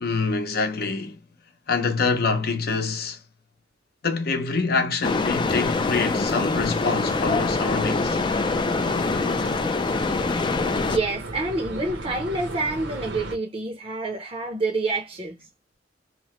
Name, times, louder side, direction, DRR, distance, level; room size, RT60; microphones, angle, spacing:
voice 1, 0.0-1.2 1.7-3.2 4.0-8.2, left 4 dB, 60° left, 0.7 m, -25 dB
sound 1, 5.0-11.0, left 3 dB, 25° left, 0.4 m, -24 dB
sound 2, 7.1-13.4, right 2 dB, 90° right, 0.9 m, -36 dB
voice 2, 10.8-15.4, right 2 dB, 30° right, 0.6 m, -27 dB
2.9 x 2.0 x 2.9 m
head